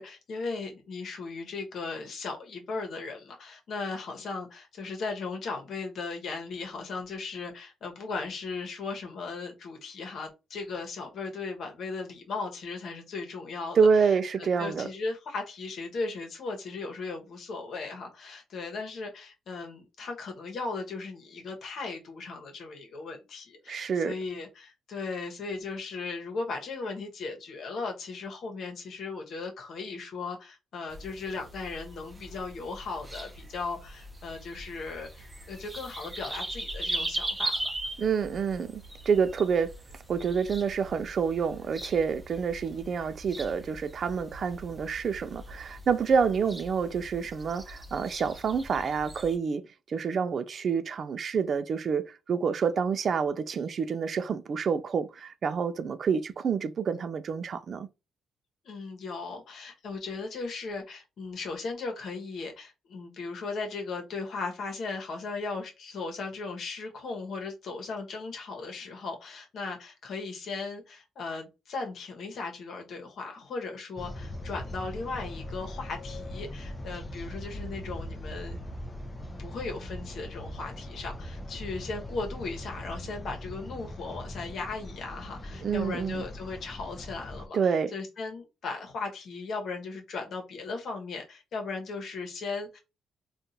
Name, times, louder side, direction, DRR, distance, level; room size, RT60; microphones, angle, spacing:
voice 1, 0.0-37.5 58.6-78.6 79.4-92.8, left 4 dB, 65° left, 1.1 m, -37 dB
voice 2, 13.8-14.9 23.7-24.1 38.0-39.7 40.1-49.6 49.9-57.9 85.6-86.2 87.5-87.9, right 6 dB, 50° right, 0.4 m, -28 dB
sound 1, 30.9-49.4, right 1 dB, 20° right, 0.7 m, -40 dB
sound 2, 74.0-87.5, left 1 dB, 20° left, 0.6 m, -40 dB
3.6 x 2.4 x 2.7 m
cardioid pair, 90°, 0 cm